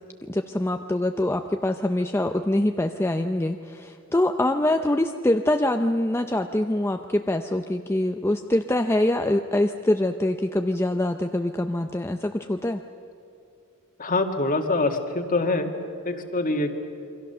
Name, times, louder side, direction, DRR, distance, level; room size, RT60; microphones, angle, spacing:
voice 1, 0.3-12.8, left 1 dB, 10° left, 5 dB, 0.6 m, -24 dB
voice 2, 14.0-16.8, left 2 dB, 40° left, 5 dB, 1.9 m, -25 dB
28.0 x 23.5 x 6.8 m, 2.6 s
head